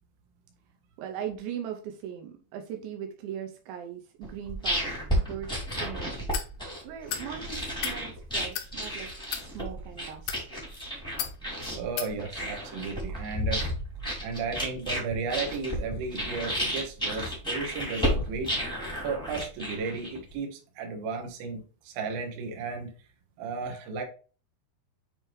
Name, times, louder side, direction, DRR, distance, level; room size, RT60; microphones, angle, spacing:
voice 1, 1.0-6.3 6.8-9.1 9.4-10.3, right 9 dB, 80° right, 3 dB, 3.0 m, -39 dB
sound 1, 4.2-20.3, equal, ahead, 1.1 m, -32 dB
sound 2, 6.3-6.5 7.1-7.3 7.7-8.0 8.5-8.7 9.2-9.5 10.1-10.4 11.2-11.4 12.0-12.1, left 10 dB, 75° left, 2.6 m, -33 dB
voice 2, 11.7-13.6 14.2-18.5 19.0-22.9 23.4-24.0, right 4 dB, 65° right, 2 dB, 2.8 m, -34 dB
8.9 x 3.3 x 3.2 m, 0.37 s
omnidirectional pair, 5.3 m